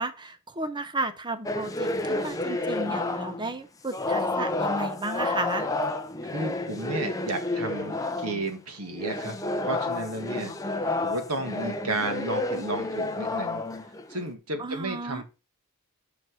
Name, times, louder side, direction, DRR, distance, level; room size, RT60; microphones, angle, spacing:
voice 1, 0.0-5.7 14.6-15.2, right 2 dB, 20° right, 0.8 m, -33 dB
sound 1, 1.4-3.5 3.9-8.5 8.9-14.3, left 2 dB, 15° left, 0.7 m, -30 dB
voice 2, 6.2-13.6 14.1-15.2, right 2 dB, 85° right, 1.8 m, -33 dB
6.0 x 5.3 x 6.2 m
head